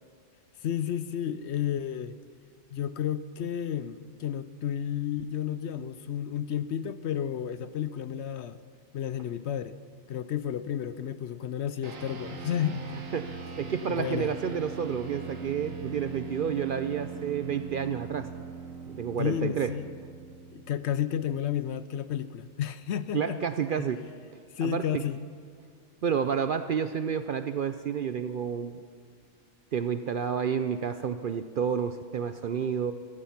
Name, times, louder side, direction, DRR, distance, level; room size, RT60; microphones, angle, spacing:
voice 1, 0.6-2.2 2.7-8.6 8.9-9.8 10.1-12.9 14.0-14.3 19.2-19.9 20.5-23.4 24.6-25.2, left 9 dB, 65° left, 14 dB, 0.8 m, -32 dB
sound 1, 11.8-21.5, right 6 dB, 85° right, 1.7 m, -41 dB
voice 2, 13.1-18.3 18.9-19.7 23.1-24.0 24.6-25.0 26.0-28.8 29.7-32.9, right 7 dB, 60° right, 10 dB, 0.5 m, -30 dB
15.5 x 14.5 x 5.9 m, 2.1 s
omnidirectional pair, 1.3 m